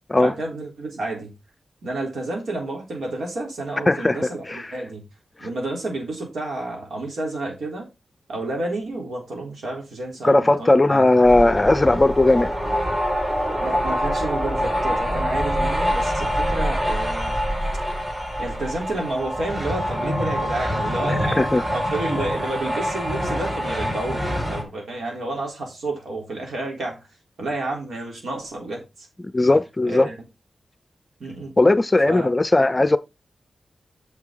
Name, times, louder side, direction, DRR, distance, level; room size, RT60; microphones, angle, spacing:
voice 1, 0.2-1.3 1.8-5.0 5.4-7.9 8.3-11.1 13.6-17.4 18.4-27.0 27.4-28.8 29.4-29.5 29.8-30.2 31.2-31.5 32.1-32.3, right 2 dB, 85° right, 3.7 m, -30 dB
voice 2, 3.9-4.8 10.2-12.5 21.4-21.6 29.3-30.1 31.6-33.0, left 2 dB, 20° left, 0.5 m, -17 dB
sound 1, 11.2-24.6, equal, 20° right, 3.2 m, -25 dB
9.2 x 6.5 x 3.9 m
wide cardioid pair, 140°, 0 cm